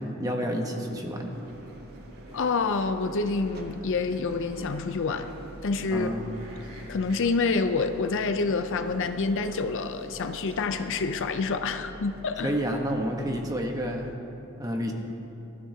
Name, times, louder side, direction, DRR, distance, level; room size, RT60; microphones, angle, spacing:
voice 1, 0.0-1.3 5.9-6.3 12.4-14.1 14.6-14.9, equal, 15° right, 2 dB, 1.1 m, -29 dB
sound 1, 0.9-14.2, right 2 dB, 45° right, 0.8 m, -46 dB
sound 2, 1.3-11.4, equal, 75° right, 2.5 m, -49 dB
voice 2, 2.3-5.3 5.6-6.1 6.9-12.5, left 4 dB, 60° left, 8 dB, 0.6 m, -27 dB
19.5 x 12.0 x 2.8 m, 2.9 s
head